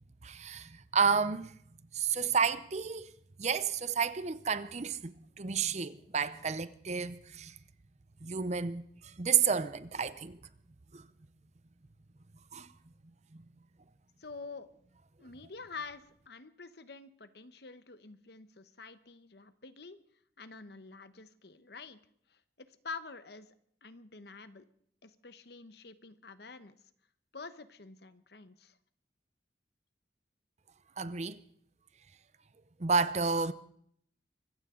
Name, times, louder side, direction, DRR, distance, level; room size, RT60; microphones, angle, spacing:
voice 1, 0.2-1.5 1.9-3.1 3.4-7.5 8.2-8.8 9.2-10.4 10.9-11.0 12.5-12.7 31.0-31.4 32.8-33.5, right 6 dB, 40° right, 0.6 m, -31 dB
voice 2, 14.2-14.7 15.2-20.0 20.4-22.0 22.3-23.5 23.8-24.6 25.0-26.7 27.3-28.8, left 4 dB, 60° left, 1.0 m, -47 dB
24.5 x 15.5 x 3.8 m
head